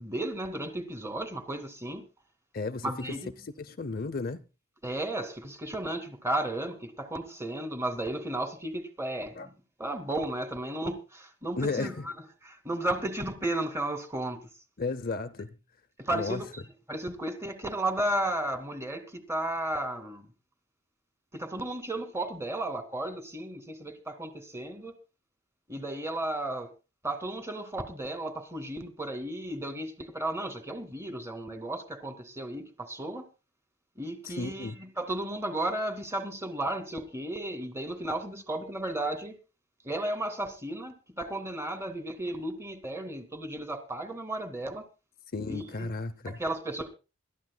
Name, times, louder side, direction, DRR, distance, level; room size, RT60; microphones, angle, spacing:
voice 1, 0.0-2.0 2.8-3.3 4.8-9.5 9.8-12.1 12.4-14.5 16.0-16.6 16.9-20.3 21.3-25.0 25.7-26.7 27.0-33.2 34.0-39.3 39.8-44.8 45.5-45.9 46.2-46.9, right 1 dB, 15° right, 2.4 m, -34 dB
voice 2, 2.5-4.4 9.4-9.5 11.6-12.1 14.8-15.5 16.1-16.4 34.2-34.8 45.3-46.4, left 3 dB, 45° left, 0.7 m, -34 dB
27.0 x 13.0 x 2.3 m
head